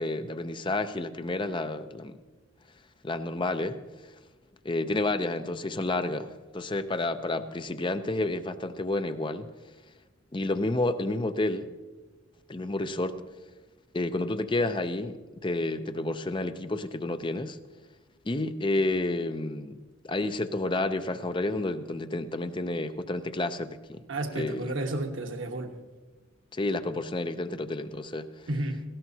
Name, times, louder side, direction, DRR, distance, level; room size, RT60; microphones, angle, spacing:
voice 1, 0.0-2.2 3.0-3.8 4.6-9.5 10.3-11.7 12.5-13.2 13.9-17.6 18.2-19.8 20.0-24.0 24.3-24.7 26.5-28.3, left 2 dB, 25° left, 10 dB, 0.6 m, -30 dB
voice 2, 24.1-25.7 28.5-28.8, right 2 dB, 70° right, 4 dB, 1.2 m, -32 dB
18.5 x 16.5 x 2.8 m, 1.2 s
head